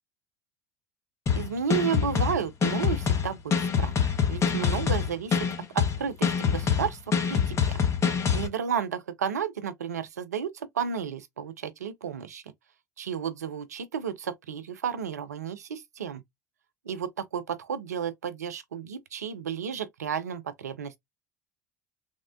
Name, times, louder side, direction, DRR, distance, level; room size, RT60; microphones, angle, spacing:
sound 1, 1.3-8.5, left 7 dB, 35° left, 0.8 m, -25 dB
voice 1, 1.3-3.9 4.3-5.5 5.7-7.0 7.3-7.8 8.3-12.4 13.0-16.2 16.9-21.0, right 7 dB, 85° right, 0.4 m, -32 dB
3.5 x 2.1 x 2.3 m
hypercardioid pair, 70°, 9 cm